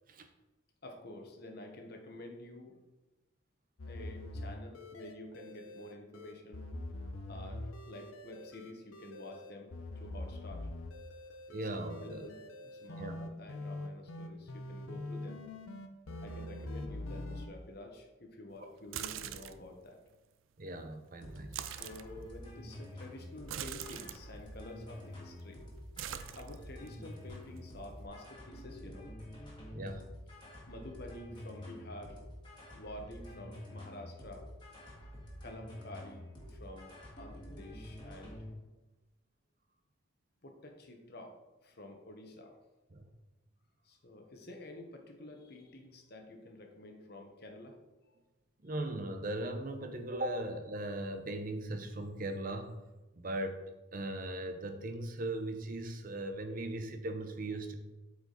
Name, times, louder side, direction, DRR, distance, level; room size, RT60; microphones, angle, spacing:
voice 1, 0.8-2.8 3.9-6.7 7.3-10.7 11.5-11.6 12.0-15.4 16.2-20.0 21.6-25.8 26.2-29.1 30.7-32.2 32.7-34.5 35.4-36.2 36.5-38.4 40.4-42.6 43.8-47.8 48.0-48.2, left 1 dB, 50° left, 3 dB, 1.1 m, -49 dB
sound 1, 3.8-17.5, left 1 dB, 90° left, 0.8 m, -44 dB
voice 2, 11.5-12.3 13.0-13.2 18.6-18.7 20.6-21.6 29.7-30.1 32.5-32.6 42.9-43.0 48.6-52.8 53.2-53.6 53.9-57.7, right 1 dB, 40° right, 7 dB, 0.7 m, -38 dB
sound 2, 18.8-19.7 21.4-22.1 23.4-24.2 25.0-25.4 25.7-26.9 27.3-28.1, right 10 dB, 75° right, 0.4 m, -43 dB
sound 3, 21.2-38.5, left 1 dB, 20° left, 1.7 m, -48 dB
8.3 x 4.9 x 4.0 m, 1.1 s
head